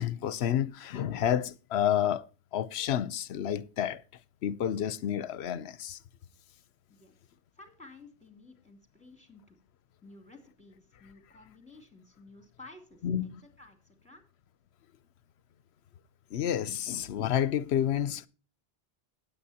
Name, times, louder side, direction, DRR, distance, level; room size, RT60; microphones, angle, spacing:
voice 1, 0.0-4.0 4.4-6.0 13.0-13.4 16.3-18.3, left 10 dB, 70° left, 0.9 m, -30 dB
voice 2, 7.5-9.6 10.0-13.3 13.6-14.2, left 2 dB, 5° left, 2.7 m, -53 dB
18.0 x 8.5 x 2.8 m
omnidirectional pair, 1.1 m